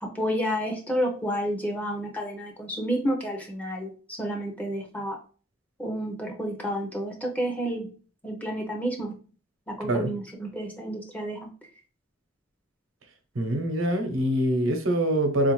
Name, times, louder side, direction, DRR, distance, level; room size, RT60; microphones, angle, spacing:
voice 1, 0.0-5.2 5.8-7.9 8.2-9.1 9.7-11.5, equal, 10° left, 0.5 m, -30 dB
voice 2, 9.8-10.1 13.3-15.5, right 1 dB, 90° right, 0.8 m, -24 dB
3.8 x 2.4 x 3.0 m
head